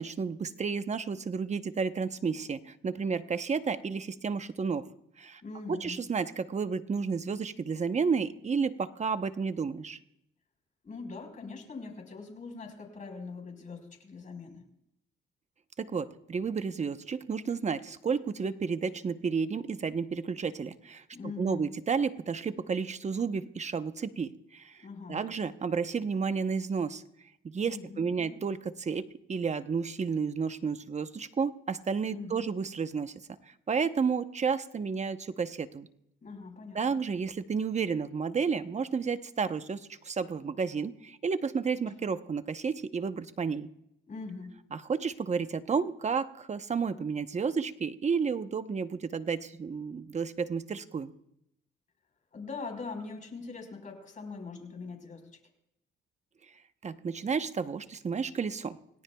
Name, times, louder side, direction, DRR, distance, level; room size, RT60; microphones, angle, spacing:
voice 1, 0.0-4.9 5.2-5.4 5.7-10.0 15.8-21.0 21.4-24.8 25.1-27.0 27.4-33.1 33.5-35.9 36.7-43.7 44.7-51.1 56.8-58.8, right 5 dB, 35° right, 10 dB, 0.9 m, -31 dB
voice 2, 5.4-6.1 10.8-14.6 21.1-21.7 24.8-25.3 27.7-28.3 32.1-32.5 36.2-36.9 44.1-44.7 52.3-55.3, left 4 dB, 40° left, 4 dB, 4.8 m, -42 dB
28.0 x 18.0 x 2.3 m, 0.78 s
cardioid pair, 90°, 20 cm